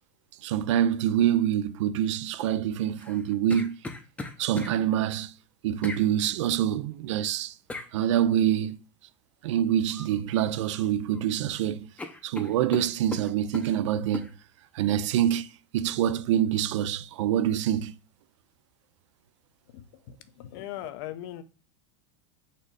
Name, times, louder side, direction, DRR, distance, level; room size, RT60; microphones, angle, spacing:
voice 1, 0.4-3.8 4.4-5.3 5.6-7.5 7.9-8.8 9.4-11.9 12.2-14.3 14.8-15.5 15.7-17.9, right 10 dB, 85° right, 0.4 m, -26 dB
sound 1, 3.0-4.7 5.8-6.0 7.7-7.9 9.9-10.2 10.5-11.2 11.5-11.6 12.0-13.7 14.1-14.3, left 2 dB, 10° left, 0.5 m, -38 dB
voice 2, 19.7-21.4, left 13 dB, 60° left, 0.6 m, -40 dB
4.2 x 2.6 x 4.6 m
supercardioid pair, 125°, 15 cm